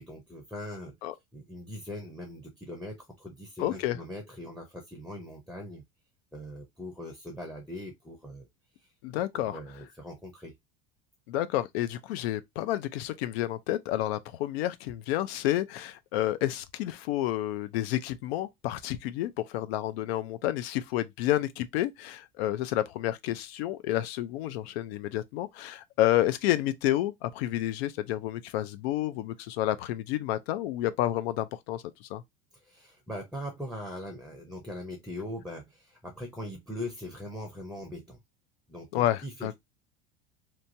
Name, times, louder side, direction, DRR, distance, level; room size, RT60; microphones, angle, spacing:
voice 1, 0.0-1.0 1.3-5.9 6.3-8.5 9.3-10.5 32.6-38.2 38.7-39.5, left 1 dB, ahead, 0.5 m, -41 dB
voice 2, 3.6-4.0 9.0-9.6 11.3-32.2 38.9-39.5, left 14 dB, 85° left, 0.5 m, -30 dB
3.0 x 2.3 x 2.6 m
supercardioid pair, 135°, 30 cm